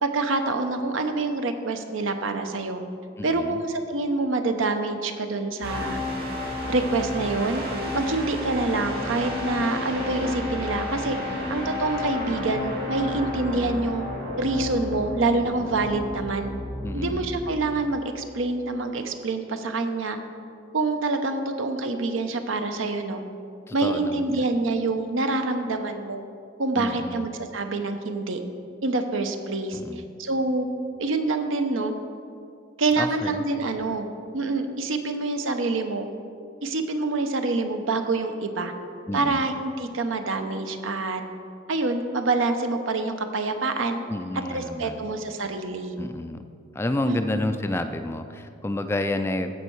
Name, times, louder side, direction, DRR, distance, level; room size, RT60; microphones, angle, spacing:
voice 1, 0.0-2.8 3.2-6.0 6.7-7.6 7.9-11.2 11.5-14.1 14.4-16.5 16.9-20.2 20.7-23.2 23.7-26.2 26.6-28.4 28.8-29.8 30.2-30.7 31.0-31.9 32.8-34.1 34.3-36.1 36.6-38.7 39.1-41.2 41.7-44.0 44.5-45.9 47.1-47.2, right 3 dB, 75° right, 7 dB, 0.8 m, -26 dB
voice 2, 3.2-3.6 11.3-11.6 15.6-15.7 16.8-17.3 23.7-24.3 26.8-27.3 29.7-30.0 33.0-33.4 39.1-39.4 44.1-45.1 46.0-46.4 46.7-49.5, left 1 dB, 10° left, 8 dB, 0.3 m, -30 dB
sound 1, 5.6-17.6, left 1 dB, 50° right, 2.0 m, -31 dB
15.0 x 5.5 x 4.6 m, 2.5 s
head